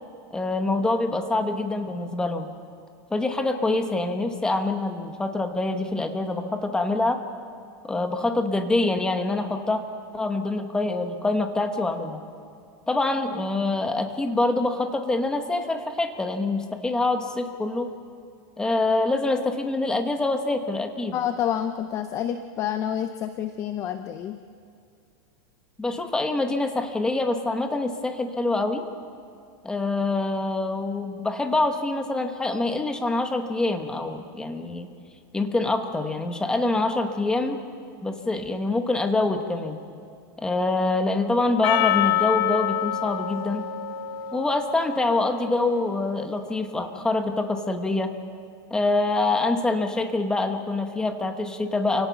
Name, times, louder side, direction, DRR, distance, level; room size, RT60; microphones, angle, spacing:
voice 1, 0.3-2.5 3.1-7.2 7.9-9.8 10.1-12.2 12.9-17.9 18.6-21.2 25.8-28.9 29.6-34.9 35.3-37.6 38.0-39.8 40.4-43.6 44.3-48.1 48.7-52.1, left 2 dB, 5° left, 6 dB, 1.0 m, -25 dB
voice 2, 21.1-24.4, left 9 dB, 20° left, 9 dB, 0.5 m, -28 dB
Percussion, 41.6-46.1, left 12 dB, 65° left, 1.9 m, -27 dB
28.5 x 17.5 x 5.8 m, 2.4 s
supercardioid pair, 170°, 13 cm